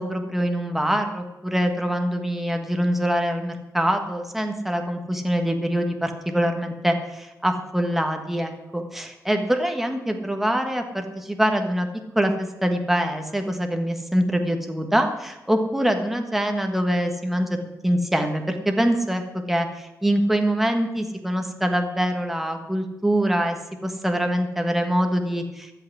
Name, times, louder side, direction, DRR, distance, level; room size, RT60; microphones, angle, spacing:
voice 1, 0.0-11.9 12.1-17.5 17.8-23.6 23.8-25.7, equal, 5° right, 4 dB, 1.3 m, -24 dB
14.5 x 5.8 x 9.8 m, 0.99 s
wide cardioid pair, 150°, 6 cm